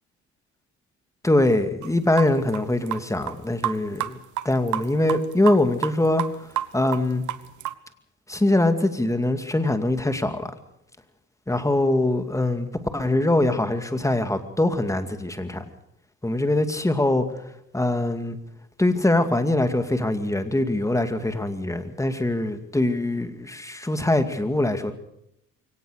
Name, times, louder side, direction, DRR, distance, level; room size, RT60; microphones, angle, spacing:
voice 1, 1.2-6.5 6.7-7.2 8.3-10.5 11.5-15.7 16.2-17.3 17.7-18.4 18.8-24.9, left 1 dB, 10° left, 8 dB, 2.3 m, -23 dB
sound 1, 1.8-1.9 2.2-3.4 3.6-4.1 4.4-5.9 6.2-7.7, right 12 dB, 80° right, 1.2 m, -28 dB
23.0 x 18.0 x 6.5 m, 0.77 s
cardioid pair, 90°, 30 cm